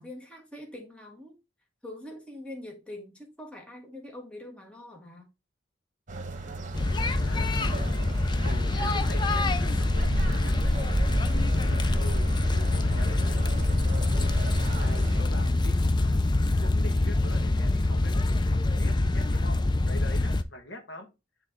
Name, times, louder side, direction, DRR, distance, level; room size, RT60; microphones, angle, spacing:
voice 1, 0.0-1.3 1.8-5.3, left 1 dB, 5° left, 1.5 m, -43 dB
sound 1, 6.1-15.2, right 1 dB, 40° right, 1.2 m, -34 dB
sound 2, 6.7-20.4, left 2 dB, 25° left, 0.4 m, -25 dB
voice 2, 7.1-8.0 8.4-10.8 11.3-13.5 13.8-14.3 14.8-16.2 16.6-21.1, left 1 dB, 65° left, 1.4 m, -44 dB
8.9 x 3.5 x 3.7 m
head